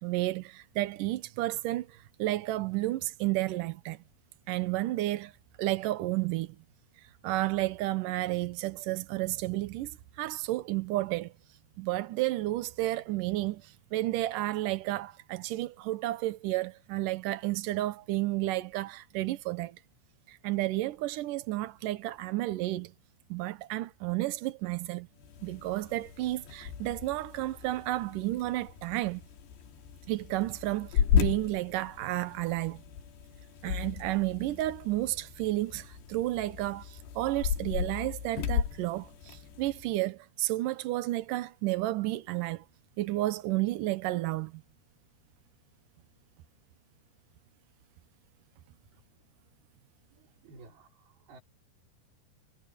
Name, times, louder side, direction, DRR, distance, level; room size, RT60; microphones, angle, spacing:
voice 1, 0.0-4.0 4.5-5.3 5.6-6.6 7.2-9.9 10.2-11.3 11.8-19.8 20.3-22.9 23.3-25.1 25.4-29.2 30.1-32.8 33.6-42.7 43.0-44.6, right 17 dB, 85° right, 1.8 m, -31 dB
sound 1, 25.2-39.9, left 8 dB, 70° left, 4.2 m, -35 dB
voice 2, 50.1-51.4, right 3 dB, 55° right, 7.0 m, -55 dB
omnidirectional pair, 5.1 m